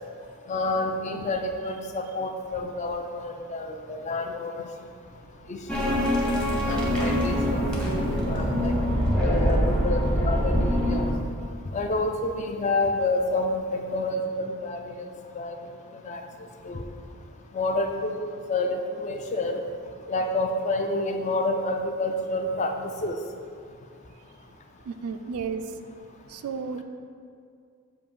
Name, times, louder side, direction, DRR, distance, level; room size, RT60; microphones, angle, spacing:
voice 1, 0.5-4.7 5.5-6.0 6.7-8.8 9.2-11.1 11.7-15.1 15.3-15.5 15.9-16.2 16.6-16.8 17.5-19.6 20.1-23.2, left 2 dB, 30° left, 5 dB, 0.3 m, -29 dB
sound 1, 5.7-11.1, equal, 5° left, 0.7 m, -24 dB
voice 2, 24.9-25.7 26.3-26.8, right 5 dB, 80° right, 8 dB, 0.3 m, -32 dB
7.0 x 2.6 x 5.2 m, 2.3 s
head